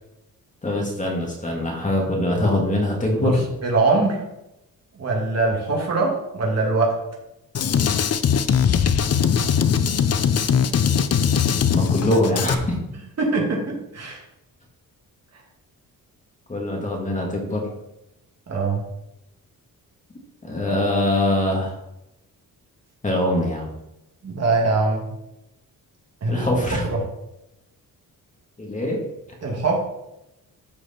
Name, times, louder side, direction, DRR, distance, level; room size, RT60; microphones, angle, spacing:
voice 1, 0.6-3.4 11.7-12.8 16.5-17.7 20.4-21.8 23.0-23.7 26.3-26.9 28.6-29.0, left 1 dB, 20° left, -1 dB, 2.1 m, -23 dB
voice 2, 3.6-4.2 4.9-7.0 13.2-14.2 18.5-18.8 24.2-25.0 26.2-26.5 26.8-27.0 29.4-29.8, right 3 dB, 45° right, -1 dB, 2.5 m, -22 dB
Drum kit, 7.5-12.5, left 7 dB, 45° left, 0.6 m, -20 dB
13.0 x 4.9 x 4.4 m, 0.88 s
wide cardioid pair, 135°, 36 cm